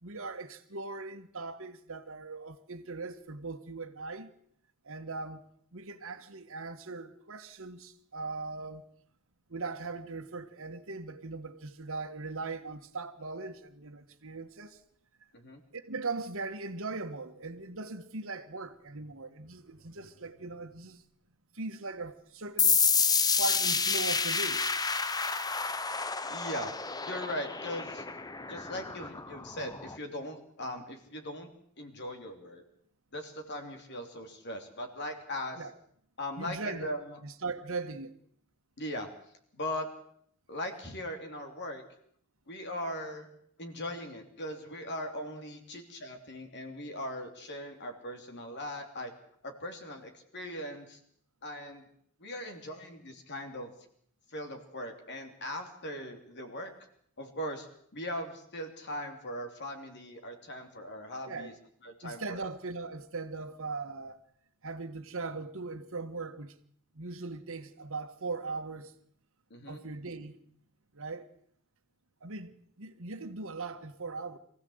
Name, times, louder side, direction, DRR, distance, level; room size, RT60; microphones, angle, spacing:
voice 1, 0.0-4.3 4.8-5.4 5.7-8.8 9.5-14.8 15.7-21.0 21.5-22.8 23.4-24.7 35.6-35.7 36.4-37.0 37.2-38.2 61.3-61.5 62.0-64.2 64.6-66.6 66.9-68.9 69.7-70.3 70.9-71.3 72.2-74.4, right 3 dB, 65° right, 1.5 m, -39 dB
sound 1, 22.6-30.0, left 5 dB, 15° left, 0.8 m, -29 dB
voice 2, 26.3-26.7 27.0-28.0 28.5-31.5 31.8-32.6 33.1-35.6 36.2-37.0 38.8-39.1 39.5-39.9 40.5-41.8 42.5-43.3 43.6-49.1 49.4-51.0 51.4-51.8 52.2-53.7 54.3-56.7 57.2-57.7 57.9-61.5 61.8-62.5 69.5-69.8, left 1 dB, 50° left, 3.1 m, -39 dB
23.5 x 15.5 x 8.0 m
head